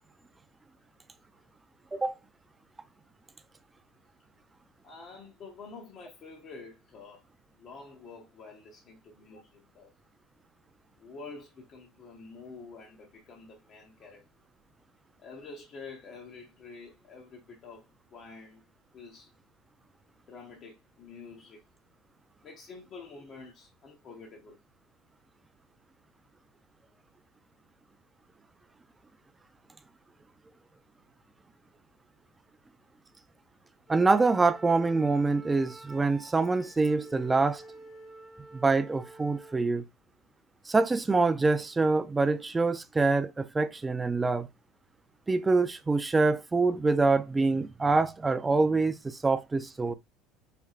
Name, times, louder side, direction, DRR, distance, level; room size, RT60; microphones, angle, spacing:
voice 1, 4.8-7.2 7.6-9.9 11.0-14.3 15.2-18.6 18.9-19.3 20.3-21.7 22.4-24.6, left 4 dB, 35° left, 0.9 m, -48 dB
Wind instrument woodwind instrument, 33.9-39.7, right 2 dB, 5° left, 0.9 m, -49 dB
voice 2, 33.9-37.6 38.5-39.8 40.7-44.5 45.3-49.9, right 3 dB, 10° right, 0.4 m, -25 dB
4.3 x 3.5 x 2.4 m
cardioid pair, 150°, 0 cm